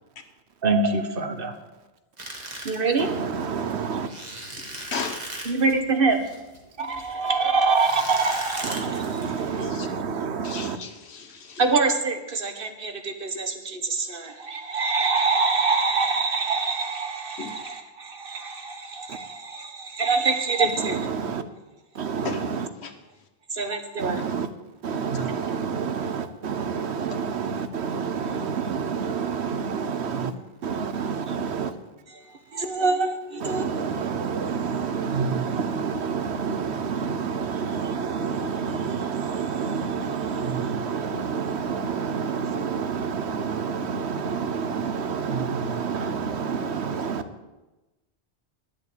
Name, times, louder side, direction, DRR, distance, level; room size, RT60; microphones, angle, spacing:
voice 1, 0.6-1.5 2.6-3.2 5.5-6.2 6.8-9.4 11.6-21.1 23.5-24.2 25.4-25.5 31.1-31.3 32.1-32.2 32.5-33.6, right 4 dB, 55° right, 1.4 m, -25 dB
sound 1, 2.2-9.7, right 1 dB, 40° right, 2.0 m, -38 dB
voice 2, 3.0-4.1 8.6-10.8 20.8-21.4 21.9-22.7 24.0-24.5 24.8-30.3 30.6-31.7 33.4-47.2, right 6 dB, 75° right, 1.2 m, -28 dB
voice 3, 4.7-5.2 9.6-9.9 10.4-11.6 17.4-17.5 22.2-22.5 22.8-22.9 25.1-25.3, left 5 dB, 70° left, 1.4 m, -34 dB
10.5 x 7.7 x 8.6 m
omnidirectional pair, 1.1 m